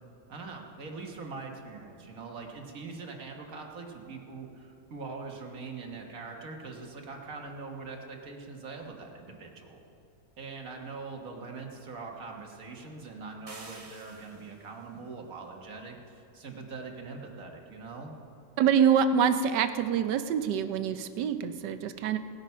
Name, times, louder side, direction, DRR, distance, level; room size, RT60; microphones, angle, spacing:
voice 1, 0.3-9.8 10.4-18.1, right 4 dB, 55° right, 2 dB, 1.8 m, -42 dB
sound 1, 13.5-14.7, right 2 dB, 25° right, 0.9 m, -48 dB
voice 2, 18.6-22.2, right 7 dB, 90° right, 10 dB, 1.3 m, -25 dB
18.5 x 8.9 x 5.6 m, 2.6 s
omnidirectional pair, 1.8 m